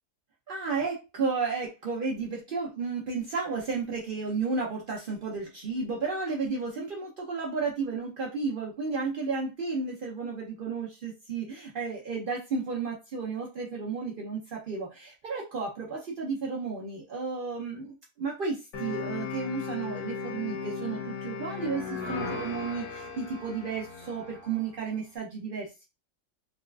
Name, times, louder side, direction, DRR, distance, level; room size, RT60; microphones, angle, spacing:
voice 1, 0.5-25.9, right 4 dB, 75° right, -2 dB, 0.5 m, -33 dB
sound 1, 18.7-24.7, left 5 dB, 65° left, 1.4 m, -36 dB
3.9 x 2.4 x 2.2 m, 0.27 s
omnidirectional pair, 1.8 m